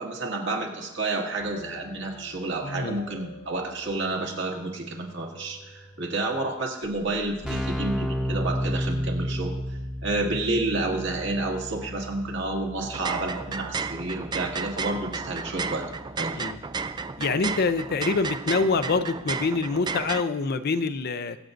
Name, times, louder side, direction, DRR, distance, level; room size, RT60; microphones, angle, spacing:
voice 1, 0.0-16.4, right 2 dB, 60° right, 0 dB, 2.0 m, -30 dB
sound 1, 1.4-6.5, left 3 dB, 30° left, 0.9 m, -47 dB
voice 2, 2.6-3.0 16.4-16.6 17.2-21.4, left 4 dB, 50° left, 11 dB, 0.5 m, -26 dB
Keyboard (musical), 6.8-6.9 7.1-17.8, equal, 5° right, 1.0 m, -34 dB
sound 2, 12.8-20.2, right 4 dB, 20° right, 0.3 m, -33 dB
24.0 x 8.0 x 2.6 m, 0.98 s
head